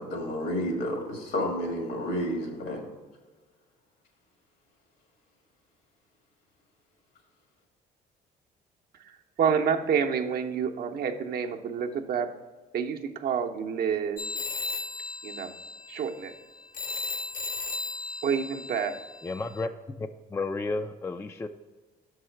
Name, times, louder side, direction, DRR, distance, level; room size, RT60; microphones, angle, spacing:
voice 1, 0.0-2.8, equal, 75° left, 2 dB, 1.8 m, -30 dB
voice 2, 8.9-12.3 12.7-14.3 15.2-15.5 15.9-16.3 18.2-19.0, right 7 dB, 60° right, 4 dB, 0.7 m, -28 dB
sound 1, 14.2-19.6, left 3 dB, 50° left, 0.9 m, -36 dB
voice 3, 19.2-19.7 20.0-21.5, left 3 dB, 15° left, 8 dB, 0.3 m, -32 dB
6.2 x 4.7 x 4.5 m, 1.3 s
supercardioid pair, 65°, 18 cm